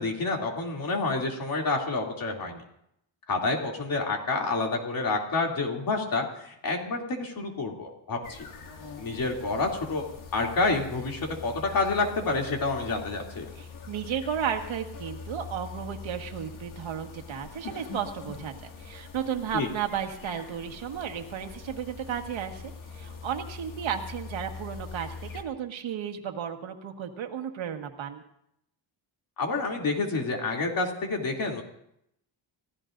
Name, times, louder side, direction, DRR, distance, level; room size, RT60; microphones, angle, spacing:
voice 1, 0.0-2.6 3.3-8.5 9.0-10.0 10.3-13.5 19.5-19.7 29.4-31.6, left 3 dB, 45° left, 0 dB, 3.0 m, -28 dB
sound 1, 8.2-25.4, left 5 dB, 75° left, 2.6 m, -43 dB
voice 2, 13.6-28.2, right 8 dB, 75° right, 4 dB, 1.8 m, -34 dB
29.5 x 16.0 x 2.6 m, 0.77 s
wide cardioid pair, 175°, 47 cm